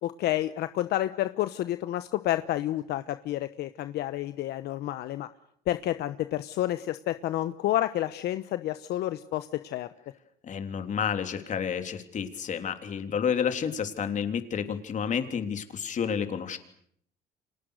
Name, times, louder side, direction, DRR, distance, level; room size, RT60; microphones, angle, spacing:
voice 1, 0.0-5.3 5.7-9.9, left 14 dB, 75° left, 11 dB, 1.1 m, -30 dB
voice 2, 10.4-16.6, left 7 dB, 45° left, 7 dB, 3.5 m, -30 dB
30.0 x 26.5 x 6.6 m, 0.67 s
cardioid pair, 110°, 17 cm